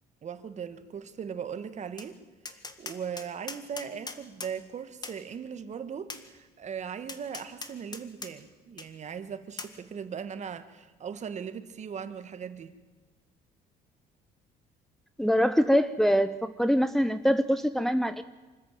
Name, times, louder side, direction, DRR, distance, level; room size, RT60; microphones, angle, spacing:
voice 1, 0.2-2.2 2.5-12.7, right 7 dB, 45° right, 11 dB, 1.6 m, -39 dB
Tap, 2.0-2.1 2.4-4.5 5.0-5.2 6.1-6.2 7.1-8.3 8.8-8.9 9.6-9.7, left 3 dB, 25° left, 1.9 m, -40 dB
voice 2, 15.2-18.2, equal, ahead, 10 dB, 0.7 m, -24 dB
25.0 x 13.5 x 9.1 m, 1.2 s
cardioid pair, 110°, 17 cm